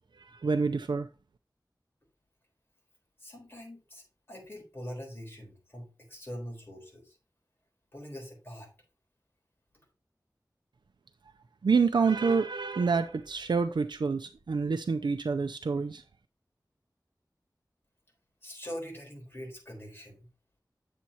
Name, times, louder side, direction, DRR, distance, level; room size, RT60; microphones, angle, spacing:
voice 1, 0.2-1.1 11.6-16.0, right 5 dB, 90° right, 0.5 m, -27 dB
voice 2, 3.2-7.2 7.9-8.7 18.4-20.3, equal, 30° left, 4.0 m, -43 dB
9.1 x 7.2 x 2.8 m
wide cardioid pair, 65°, 8 cm